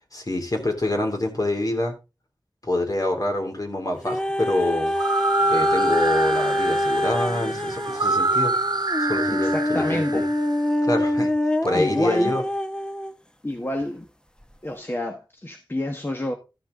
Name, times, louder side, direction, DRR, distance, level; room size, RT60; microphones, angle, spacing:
voice 1, 0.1-1.9 2.6-4.9 5.5-8.5 9.0-10.0 10.8-11.3 11.6-12.4, left 1 dB, 50° left, 3.0 m, -26 dB
sound 1, 4.0-13.1 13.8-13.9, left 1 dB, 10° left, 0.9 m, -25 dB
sound 2, 4.9-10.7, right 3 dB, 60° right, 1.0 m, -27 dB
voice 2, 9.3-10.3 11.7-12.4 13.4-14.1 14.6-16.3, left 1 dB, 30° left, 1.2 m, -28 dB
13.5 x 6.0 x 3.8 m
wide cardioid pair, 65°, 8 cm